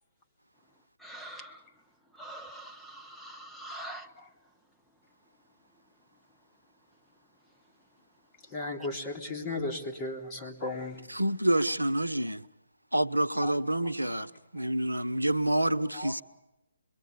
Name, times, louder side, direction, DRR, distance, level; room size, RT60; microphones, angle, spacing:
voice 1, 1.0-1.6 2.2-4.1, right 1 dB, ahead, 1.1 m, -44 dB
voice 2, 8.5-11.0 13.4-13.5 14.6-14.7 15.9-16.1, left 2 dB, 20° left, 3.5 m, -35 dB
voice 3, 11.1-12.5 12.9-16.2, right 1 dB, 90° right, 0.9 m, -28 dB
25.5 x 22.5 x 6.9 m
figure-of-eight pair, 135°, 0 cm